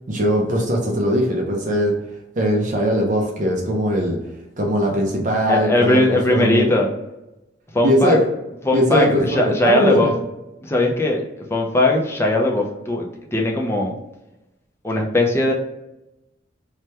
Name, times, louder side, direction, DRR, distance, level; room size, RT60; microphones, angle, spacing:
voice 1, 0.1-1.9 2.4-4.2 4.6-6.7 7.8-8.3 8.7-10.1, equal, 40° right, 0 dB, 0.5 m, -20 dB
voice 2, 5.5-6.9 7.7-8.2 8.7-10.1 10.6-11.2 11.5-13.9 14.8-15.5, left 1 dB, 15° left, 0 dB, 0.4 m, -19 dB
3.2 x 2.1 x 2.8 m, 0.93 s
head